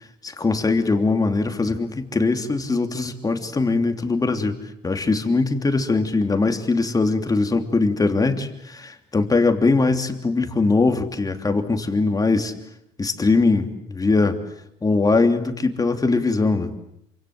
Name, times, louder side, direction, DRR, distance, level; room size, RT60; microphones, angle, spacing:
voice 1, 0.2-4.6 4.8-12.5 13.0-14.4 14.8-16.7, left 3 dB, 20° left, 6 dB, 3.1 m, -21 dB
28.0 x 26.0 x 7.9 m, 0.78 s
cardioid pair, 110°, 17 cm